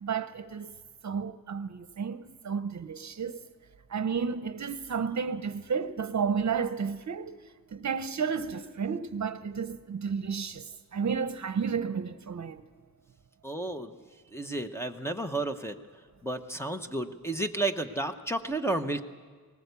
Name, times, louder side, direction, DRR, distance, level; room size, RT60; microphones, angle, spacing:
voice 1, 0.0-0.8 1.0-3.4 3.9-7.4 7.7-12.6, right 6 dB, 55° right, 0.8 m, -32 dB
voice 2, 13.4-13.9 14.3-15.8 16.2-19.0, right 2 dB, 5° left, 0.9 m, -32 dB
20.0 x 19.5 x 8.2 m
wide cardioid pair, 125°, 34 cm